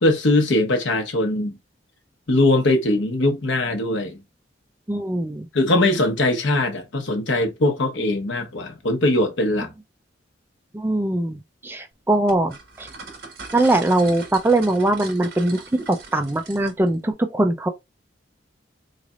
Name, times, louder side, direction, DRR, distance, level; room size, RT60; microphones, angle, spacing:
voice 1, 0.0-1.6 2.3-4.2 5.5-9.7, left 1 dB, 80° left, 0.9 m, -21 dB
voice 2, 4.9-5.5 10.7-12.9 13.5-17.7, right 2 dB, 10° right, 0.4 m, -21 dB
sound 1, 12.3-17.0, right 4 dB, 55° right, 1.5 m, -40 dB
4.0 x 3.2 x 2.4 m
head